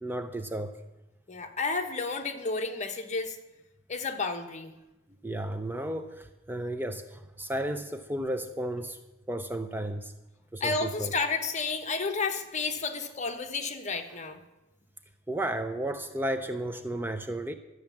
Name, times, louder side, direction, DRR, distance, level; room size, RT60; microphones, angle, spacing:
voice 1, 0.0-0.7 5.2-9.0 9.3-10.1 10.5-11.1 15.3-17.5, right 1 dB, 10° right, 9 dB, 0.5 m, -33 dB
voice 2, 1.3-3.4 3.9-4.7 10.6-14.4, left 4 dB, 40° left, 5 dB, 1.2 m, -31 dB
12.0 x 8.1 x 7.2 m, 1.0 s
head